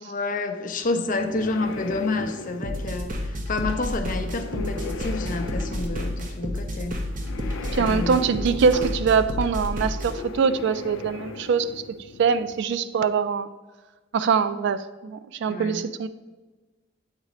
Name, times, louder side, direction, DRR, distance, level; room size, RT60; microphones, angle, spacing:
voice 1, 0.0-7.0 7.4-8.2 15.5-15.8, left 3 dB, 45° left, 6 dB, 0.6 m, -29 dB
sound 1, 0.8-12.6, left 3 dB, 90° left, 0.5 m, -38 dB
sound 2, 2.6-10.1, equal, 45° right, 0.8 m, -30 dB
voice 2, 7.7-11.8 12.2-13.5 14.1-16.1, right 6 dB, 65° right, 13 dB, 0.3 m, -23 dB
8.1 x 3.2 x 5.0 m, 1.2 s
head